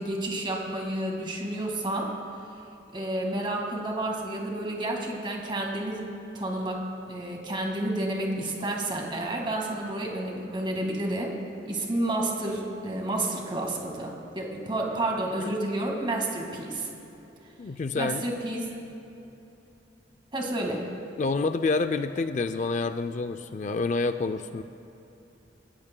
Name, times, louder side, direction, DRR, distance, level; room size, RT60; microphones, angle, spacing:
voice 1, 0.0-2.1 2.9-6.1 6.3-6.8 7.1-11.3 11.7-16.9 18.0-18.6 20.3-20.8, right 1 dB, 25° right, 0 dB, 1.9 m, -30 dB
voice 2, 17.6-18.2 21.2-24.6, left 3 dB, 40° left, 10 dB, 0.4 m, -28 dB
25.5 x 14.0 x 2.2 m, 3.0 s
head